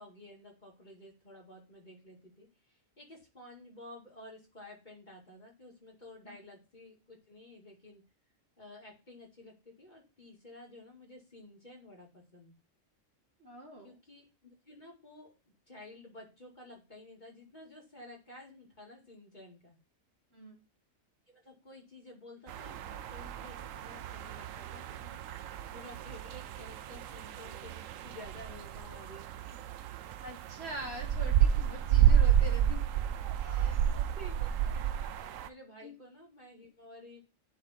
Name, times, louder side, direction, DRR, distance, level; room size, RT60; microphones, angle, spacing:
voice 1, 0.0-8.0 8.6-12.5 13.8-15.3 15.7-19.8 21.3-29.6 32.9-33.1 33.4-37.2, left 1 dB, 35° left, -2 dB, 2.2 m, -52 dB
voice 2, 13.4-13.9 20.3-20.6 30.2-32.8 33.3-33.8 35.8-35.9, right 1 dB, 50° right, 0 dB, 2.2 m, -44 dB
sound 1, 22.5-35.5, right 10 dB, 80° right, 1.0 m, -30 dB
10.5 x 3.9 x 4.2 m, 0.31 s
omnidirectional pair, 1.3 m